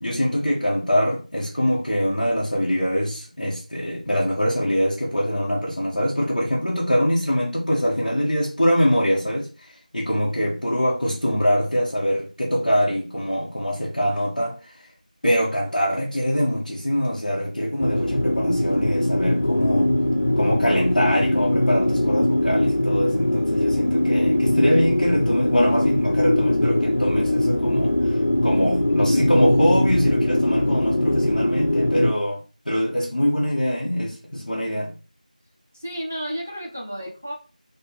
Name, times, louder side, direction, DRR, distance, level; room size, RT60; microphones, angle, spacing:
voice 1, 0.0-14.9 15.2-19.9 20.4-28.2 28.4-35.0, equal, 60° left, 1.1 m, -23 dB
sound 1, 17.8-32.1, left 1 dB, 85° left, 0.4 m, -21 dB
voice 2, 21.6-22.0 35.7-37.3, equal, 15° right, 0.4 m, -33 dB
4.6 x 2.2 x 3.2 m
figure-of-eight pair, 175°, 5 cm